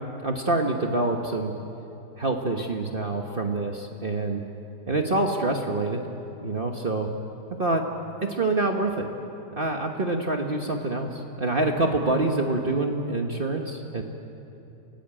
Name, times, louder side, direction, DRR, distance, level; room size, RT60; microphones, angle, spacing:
voice 1, 0.2-1.5 2.2-4.4 4.9-6.0 6.4-7.1 7.6-7.8 8.3-9.1 9.6-14.0, right 2 dB, 35° right, 3 dB, 1.4 m, -26 dB
27.5 x 16.0 x 8.9 m, 2.9 s
omnidirectional pair, 1.7 m